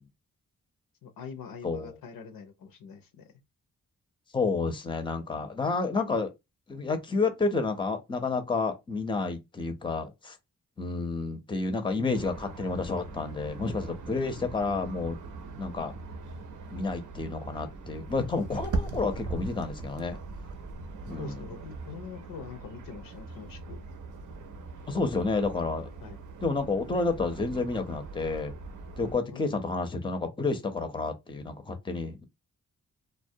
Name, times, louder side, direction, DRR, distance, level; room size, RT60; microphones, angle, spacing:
voice 1, 1.0-3.3 21.2-23.8 26.0-26.2 29.3-29.5, left 6 dB, 80° left, 0.6 m, -44 dB
voice 2, 4.3-6.3 6.7-10.4 10.8-15.2 15.6-15.9 16.7-20.2 21.1-21.3 24.9-25.9 26.4-28.5 29.0-32.2, left 3 dB, 15° left, 0.5 m, -30 dB
sound 1, 12.1-29.1, right 3 dB, 65° right, 0.6 m, -40 dB
2.2 x 2.1 x 2.7 m
cardioid pair, 65°, 34 cm